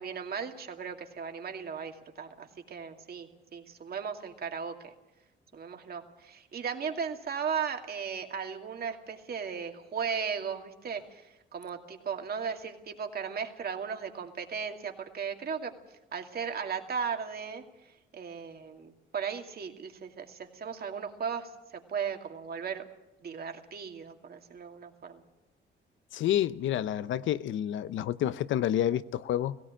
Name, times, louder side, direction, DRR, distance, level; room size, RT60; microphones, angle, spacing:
voice 1, 0.0-4.9 5.5-15.8 16.1-17.6 18.1-22.8 23.2-25.2, right 6 dB, 50° right, 2.4 m, -36 dB
voice 2, 26.1-29.6, left 11 dB, 75° left, 0.8 m, -29 dB
17.0 x 17.0 x 8.9 m
cardioid pair, 90°, 20 cm